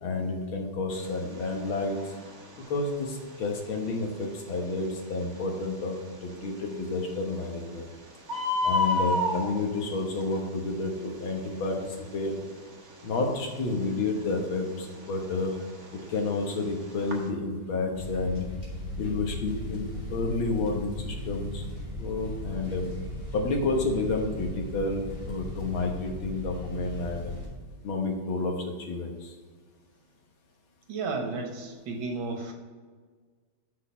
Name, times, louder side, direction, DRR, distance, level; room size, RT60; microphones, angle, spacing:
voice 1, 0.0-2.0 2.7-6.0 6.2-7.9 8.6-12.4 13.0-15.6 15.9-18.5 19.0-21.7 22.0-22.8 23.3-27.3 27.8-29.3, left 3 dB, 75° left, 1 dB, 2.1 m, -30 dB
Bird, 0.9-17.3, left 2 dB, 40° right, 1.4 m, -35 dB
sound 1, 17.9-27.5, left 1 dB, 30° left, 2.5 m, -37 dB
voice 2, 30.9-32.5, right 3 dB, 75° right, 2 dB, 2.0 m, -33 dB
6.4 x 5.9 x 5.6 m, 1.5 s
omnidirectional pair, 2.2 m